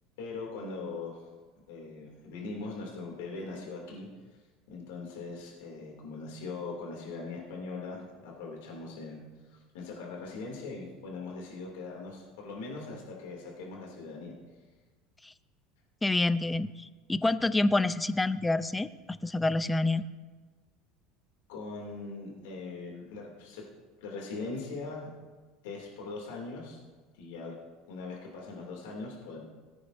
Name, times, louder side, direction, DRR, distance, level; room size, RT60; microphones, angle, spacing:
voice 1, 0.2-1.3 1.7-4.1 4.7-9.2 9.5-14.3 21.5-23.6 24.0-25.1 25.6-26.8 27.1-27.5 27.9-29.4, left 3 dB, 75° left, -1 dB, 2.8 m, -40 dB
voice 2, 16.0-20.1, left 2 dB, 10° left, 14 dB, 0.5 m, -28 dB
18.5 x 9.6 x 2.7 m, 1.3 s
hypercardioid pair, 80°, 0 cm